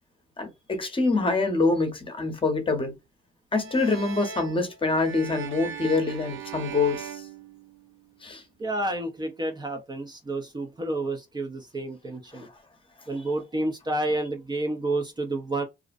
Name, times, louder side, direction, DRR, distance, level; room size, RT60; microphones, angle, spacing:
voice 1, 0.4-2.9 3.5-7.3 8.2-8.4, left 3 dB, 25° left, 0.8 m, -25 dB
sound 1, 3.5-8.2, right 7 dB, 75° right, 0.5 m, -39 dB
voice 2, 8.6-12.5 13.1-15.6, right 2 dB, 20° right, 0.6 m, -30 dB
2.5 x 2.1 x 2.4 m
cardioid pair, 90°, 20 cm